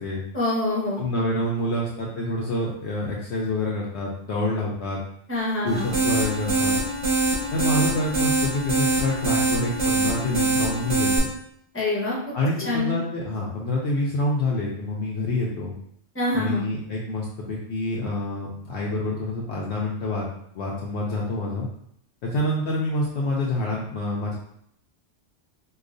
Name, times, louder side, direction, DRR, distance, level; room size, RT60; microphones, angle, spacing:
voice 1, 0.3-1.1 5.3-6.0 11.7-12.3 12.6-12.9 16.1-16.6, left 2 dB, 10° left, -5 dB, 0.9 m, -25 dB
voice 2, 1.0-5.0 5.6-6.7 7.5-11.3 12.3-15.7 16.3-20.3 20.5-21.7 22.2-24.4, left 1 dB, 70° left, -4 dB, 0.9 m, -27 dB
sound 1, 5.7-11.2, right 3 dB, 65° right, 1.6 m, -24 dB
4.7 x 2.4 x 2.5 m, 0.70 s
omnidirectional pair, 1.2 m